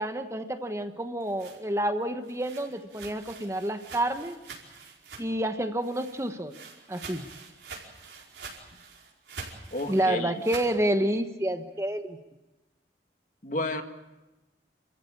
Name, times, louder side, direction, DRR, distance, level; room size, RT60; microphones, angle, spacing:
voice 1, 0.0-4.3 5.2-6.5 6.9-7.3 9.9-12.2, right 1 dB, 15° right, 7 dB, 1.2 m, -29 dB
sound 1, 1.0-5.5 5.8-10.8, right 4 dB, 80° right, 5.0 m, -45 dB
voice 2, 9.7-10.3 13.4-13.8, left 2 dB, 45° left, 6 dB, 1.9 m, -31 dB
28.0 x 15.0 x 8.6 m, 1.1 s
head